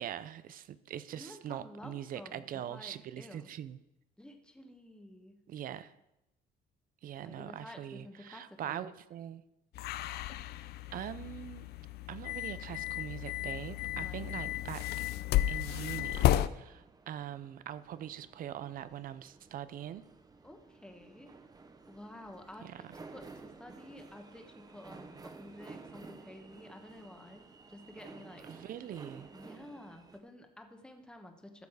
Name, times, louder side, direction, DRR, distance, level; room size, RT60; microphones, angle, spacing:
voice 1, 0.0-3.8 5.5-5.9 7.0-9.4 10.9-11.7 12.1-15.0 15.5-20.1 22.6-22.8 28.5-29.3, right 10 dB, 55° right, 15 dB, 0.6 m, -42 dB
voice 2, 1.2-3.5 4.2-5.4 7.2-8.9 13.9-14.4 20.4-21.3 21.9-28.5 29.3-31.7, left 1 dB, 5° left, 4 dB, 1.3 m, -51 dB
sound 1, 9.7-16.5, left 14 dB, 70° left, 0.5 m, -33 dB
sound 2, 10.5-30.2, right 4 dB, 20° right, 0.9 m, -55 dB
13.5 x 6.9 x 4.9 m, 0.90 s
cardioid pair, 110°, 17 cm